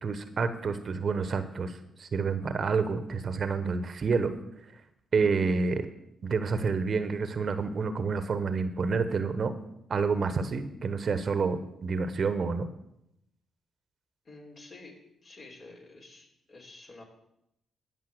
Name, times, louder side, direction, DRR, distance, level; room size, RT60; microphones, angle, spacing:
voice 1, 0.0-4.3 5.1-5.9 6.2-9.5 9.9-12.7, right 4 dB, 50° right, 10 dB, 1.1 m, -28 dB
voice 2, 14.2-15.0 15.2-17.0, left 2 dB, 50° left, 0 dB, 3.8 m, -49 dB
14.5 x 5.5 x 8.0 m, 0.82 s
hypercardioid pair, 45°, 0 cm